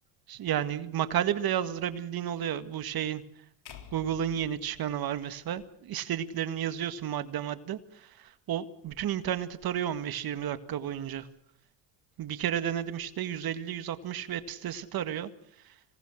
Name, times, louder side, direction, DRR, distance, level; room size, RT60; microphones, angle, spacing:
voice 1, 0.3-3.2 3.9-7.8 8.2-11.3 12.2-15.3, right 10 dB, 45° right, 12 dB, 2.0 m, -32 dB
sound 1, 3.7-5.9, left 7 dB, 50° left, 3.9 m, -51 dB
26.5 x 18.5 x 6.5 m, 0.68 s
supercardioid pair, 95°, 48 cm